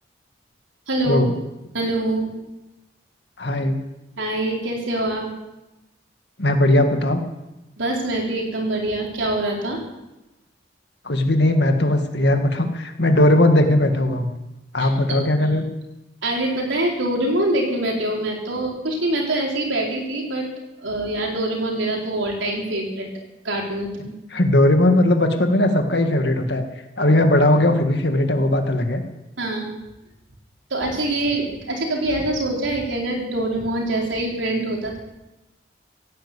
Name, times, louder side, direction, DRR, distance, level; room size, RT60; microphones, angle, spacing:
voice 1, 0.9-1.3 1.7-2.3 4.2-5.3 7.8-9.8 14.8-15.2 16.2-20.5 20.8-23.1 23.4-24.1 29.4-29.7 30.7-35.0, right 1 dB, 85° right, -1 dB, 4.4 m, -24 dB
voice 2, 3.4-3.8 6.4-7.2 11.0-14.3 14.7-15.6 24.3-26.6 27.0-29.0, left 1 dB, 65° left, 6 dB, 2.0 m, -18 dB
16.5 x 10.0 x 8.4 m, 0.98 s
head